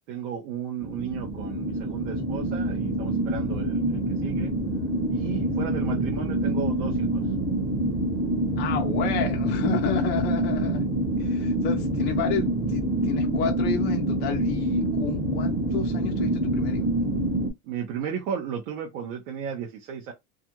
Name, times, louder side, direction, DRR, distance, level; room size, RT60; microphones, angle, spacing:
voice 1, 0.1-4.5 5.1-7.2 17.6-20.1, right 7 dB, 85° right, 0.9 m, -34 dB
sound 1, 0.8-17.5, right 1 dB, ahead, 0.9 m, -26 dB
voice 2, 8.6-10.9 11.2-16.9, left 8 dB, 30° left, 0.4 m, -31 dB
2.4 x 2.4 x 2.9 m
cardioid pair, 150°, 38 cm